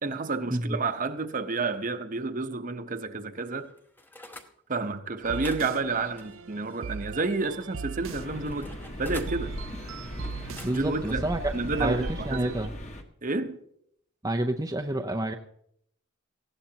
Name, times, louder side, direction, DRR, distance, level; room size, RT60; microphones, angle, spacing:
voice 1, 0.0-3.7 4.7-8.7 9.0-9.5 10.7-12.6 13.2-13.6, right 3 dB, 40° right, 0.9 m, -30 dB
sound 1, 3.4-4.5 5.2-7.2 7.6-9.4 10.3-11.1 11.6-11.9, left 1 dB, 10° left, 0.9 m, -48 dB
sound 2, 5.2-12.7, right 5 dB, 70° right, 0.6 m, -41 dB
sound 3, 8.0-13.0, equal, 35° left, 1.4 m, -38 dB
voice 2, 10.6-11.5 11.8-12.7 14.2-15.3, right 1 dB, 15° right, 0.6 m, -29 dB
19.0 x 16.0 x 2.9 m
head